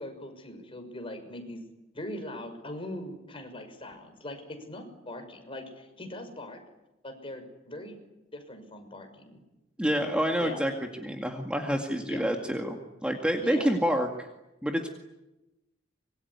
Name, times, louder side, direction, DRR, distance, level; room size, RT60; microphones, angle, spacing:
voice 1, 0.0-1.6 1.9-6.6 7.0-8.0 8.3-9.4 10.4-10.6 12.0-12.2 13.4-13.7, left 1 dB, 30° left, 5 dB, 6.1 m, -40 dB
voice 2, 9.8-10.7 11.0-14.3 14.6-14.9, equal, 5° right, 2 dB, 2.2 m, -28 dB
25.5 x 23.5 x 9.8 m, 0.97 s
head